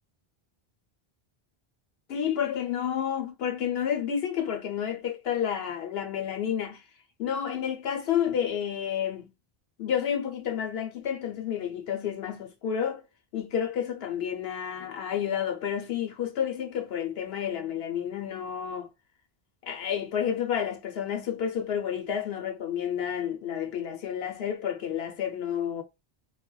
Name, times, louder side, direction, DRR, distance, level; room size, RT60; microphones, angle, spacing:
voice 1, 2.1-6.8 7.2-9.3 9.8-13.0 13.3-18.9 19.6-25.8, left 9 dB, 75° left, 0.9 m, -30 dB
3.2 x 2.1 x 2.3 m
omnidirectional pair, 1.0 m